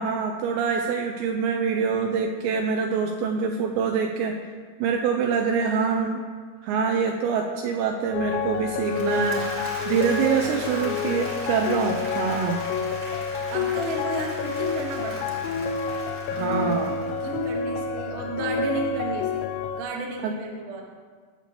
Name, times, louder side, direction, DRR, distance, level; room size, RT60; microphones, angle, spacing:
voice 1, 0.0-4.4 4.8-6.2 6.6-9.5 9.9-12.6 16.3-16.9 20.2-20.3, right 6 dB, 80° right, 3 dB, 2.7 m, -25 dB
voice 2, 5.6-6.0 10.4-11.0 13.5-15.7 16.3-19.5 19.7-20.8, right 4 dB, 65° right, 0 dB, 2.2 m, -33 dB
sound 1, 8.1-19.8, left 6 dB, 85° left, 2.8 m, -29 dB
Applause / Crowd, 8.6-17.8, right 1 dB, 40° right, 1.5 m, -39 dB
19.0 x 6.7 x 3.4 m, 1.5 s
omnidirectional pair, 5.4 m